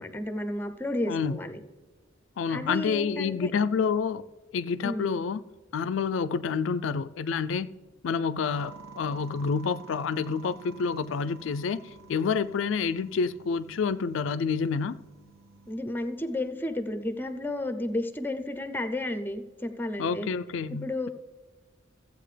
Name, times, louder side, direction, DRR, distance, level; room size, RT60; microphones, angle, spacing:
voice 1, 0.0-1.6 2.5-3.5 4.8-5.2 15.7-20.3 20.7-21.1, left 1 dB, 10° left, 0.6 m, -32 dB
voice 2, 1.1-1.4 2.4-4.2 4.5-5.4 5.7-7.7 8.0-15.0 20.0-21.1, left 5 dB, 70° left, 0.4 m, -28 dB
sound 1, 8.5-15.8, right 4 dB, 55° right, 1.5 m, -50 dB
14.5 x 8.1 x 3.3 m
head